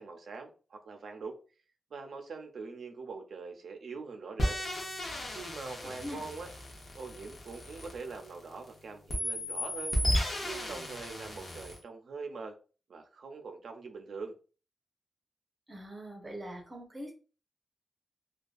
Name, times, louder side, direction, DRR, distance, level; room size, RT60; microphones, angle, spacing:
voice 1, 0.0-1.4 1.9-4.6 5.3-6.5 6.9-10.0 10.4-12.6 12.9-14.3, right 4 dB, 75° right, 0.5 m, -43 dB
sound 1, 4.4-8.7 9.1-11.8, equal, 50° left, 0.7 m, -34 dB
voice 2, 5.8-6.2 15.7-17.1, equal, 20° right, 0.7 m, -42 dB
2.5 x 2.2 x 2.3 m
wide cardioid pair, 165°, 0 cm